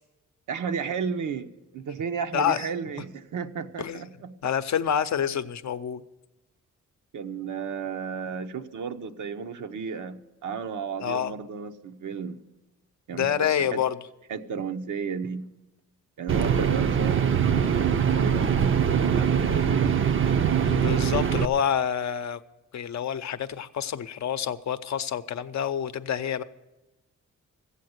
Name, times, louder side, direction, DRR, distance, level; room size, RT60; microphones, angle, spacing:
voice 1, 0.5-4.3 7.1-12.4 13.1-13.8 14.3-15.5 16.2-20.0, right 6 dB, 70° right, 0.8 m, -33 dB
voice 2, 2.3-2.7 3.8-4.0 4.4-6.0 11.0-11.3 13.1-14.0 16.4-16.7 20.7-22.4 22.7-26.4, left 8 dB, 60° left, 0.6 m, -28 dB
sound 1, 16.3-21.5, right 7 dB, 40° right, 0.6 m, -23 dB
14.5 x 8.3 x 7.9 m
cardioid pair, 110°, 31 cm